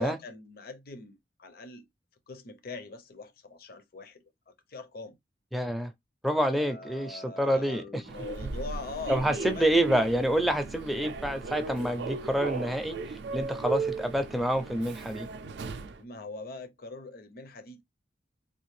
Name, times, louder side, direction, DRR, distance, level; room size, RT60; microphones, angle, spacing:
voice 1, 0.0-1.8 2.3-4.2 4.7-5.2 6.5-9.7 16.0-17.8, left 3 dB, 55° left, 0.6 m, -42 dB
voice 2, 5.5-5.9 6.2-8.0 8.4-8.5 9.1-15.3, right 1 dB, ahead, 0.4 m, -28 dB
Human voice / Subway metro underground, 8.0-16.0, right 4 dB, 65° right, 0.4 m, -37 dB
3.4 x 2.4 x 3.1 m
head